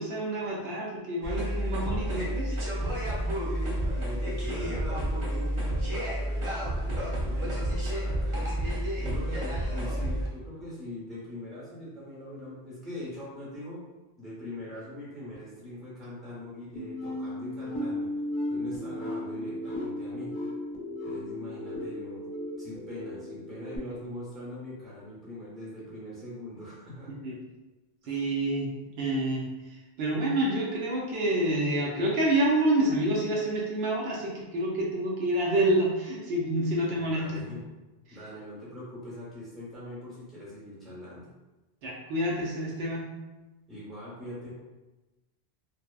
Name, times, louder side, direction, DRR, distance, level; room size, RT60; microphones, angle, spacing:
voice 1, 0.0-2.5 9.0-9.1 27.2-27.3 28.0-28.7 29.0-37.4 38.1-38.2 41.8-43.1, right 1 dB, 75° right, -3 dB, 0.8 m, -28 dB
sound 1, 1.2-10.3, right 1 dB, 40° right, 0.4 m, -30 dB
voice 2, 3.4-8.5 9.0-13.8 14.2-18.1 18.5-20.4 21.0-22.3 22.6-27.2 28.0-28.2 36.8-37.7 38.1-41.3 43.7-44.5, left 1 dB, ahead, -8 dB, 0.7 m, -42 dB
sound 2, 16.8-23.8, left 1 dB, 55° left, 0.7 m, -35 dB
2.8 x 2.1 x 2.2 m, 1.1 s
omnidirectional pair, 1.1 m